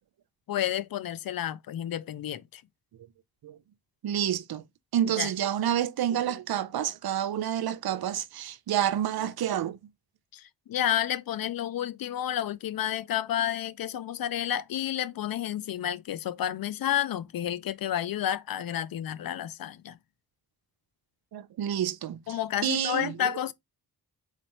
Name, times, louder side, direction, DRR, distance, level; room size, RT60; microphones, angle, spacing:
voice 1, 0.5-2.6 5.0-5.3 10.3-20.0 22.3-23.5, left 11 dB, 65° left, 0.5 m, -30 dB
voice 2, 4.0-4.6 4.9-9.8 21.3-23.3, right 10 dB, 75° right, 0.6 m, -29 dB
4.0 x 3.3 x 2.9 m
cardioid pair, 60°, 37 cm